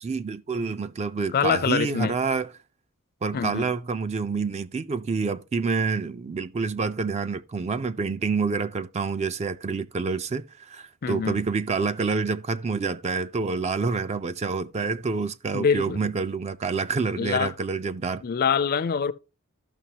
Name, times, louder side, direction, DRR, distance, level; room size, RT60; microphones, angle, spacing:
voice 1, 0.0-2.5 3.2-18.2, right 4 dB, 30° right, 0.3 m, -27 dB
voice 2, 1.3-2.1 3.3-3.7 11.0-11.4 15.5-16.0 17.2-17.5 18.2-19.1, left 6 dB, 40° left, 0.4 m, -24 dB
12.5 x 5.8 x 2.8 m
head